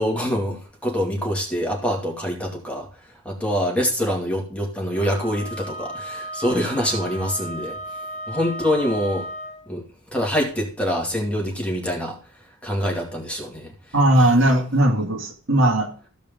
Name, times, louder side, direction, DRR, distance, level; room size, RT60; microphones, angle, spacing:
voice 1, 0.0-2.9 3.2-7.8 8.3-9.3 9.7-12.2 12.6-13.7, equal, 5° left, 0 dB, 2.4 m, -25 dB
Wind instrument woodwind instrument, 4.9-9.7, right 1 dB, 35° left, 1.9 m, -35 dB
voice 2, 13.9-16.1, right 1 dB, 70° right, 3 dB, 2.2 m, -18 dB
15.0 x 5.2 x 5.4 m, 0.41 s
head